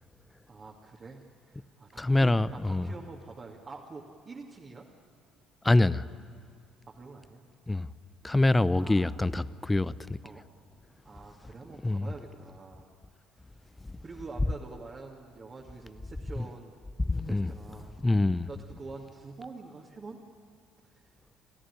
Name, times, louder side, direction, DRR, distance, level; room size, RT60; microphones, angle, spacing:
voice 1, 0.5-4.9 6.9-7.4 8.8-9.3 10.2-10.4 11.0-13.0 14.0-16.7 17.1-17.9 18.5-20.2, right 3 dB, 35° right, 2.4 m, -46 dB
voice 2, 2.0-2.9 5.6-6.0 7.7-7.9 8.2-10.2 11.8-12.1 13.9-14.0 16.4-16.5 17.0-17.5 18.0-18.5, left 2 dB, 15° left, 0.7 m, -25 dB
29.5 x 14.0 x 9.9 m
hypercardioid pair, 55°, 0 cm